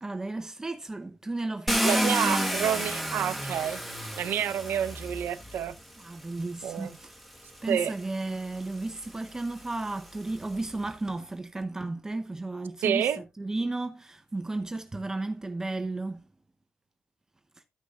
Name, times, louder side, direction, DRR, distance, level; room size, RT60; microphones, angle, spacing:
voice 1, 0.0-2.6 6.0-7.1 7.6-16.2, right 2 dB, 15° right, 0.8 m, -34 dB
Car, 1.7-5.8 6.7-6.8 7.4-10.6, equal, ahead, 1.6 m, -32 dB
voice 2, 1.8-3.8 4.2-5.8 6.6-6.9 7.7-7.9 12.8-13.2, right 9 dB, 85° right, 0.7 m, -28 dB
14.0 x 6.2 x 2.4 m
cardioid pair, 120°, 3 cm